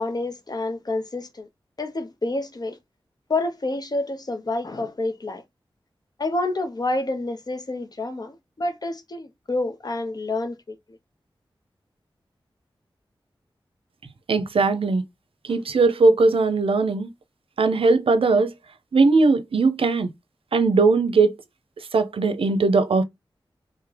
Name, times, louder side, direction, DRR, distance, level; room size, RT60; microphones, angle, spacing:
voice 1, 0.0-1.5 1.8-2.8 3.3-5.4 6.2-10.8, left 2 dB, 45° left, 0.9 m, -28 dB
voice 2, 14.3-15.0 15.5-17.1 17.6-18.5 18.9-20.1 20.5-21.3 21.9-23.0, right 3 dB, 85° right, 0.6 m, -19 dB
3.6 x 3.1 x 3.3 m
wide cardioid pair, 75°, 9 cm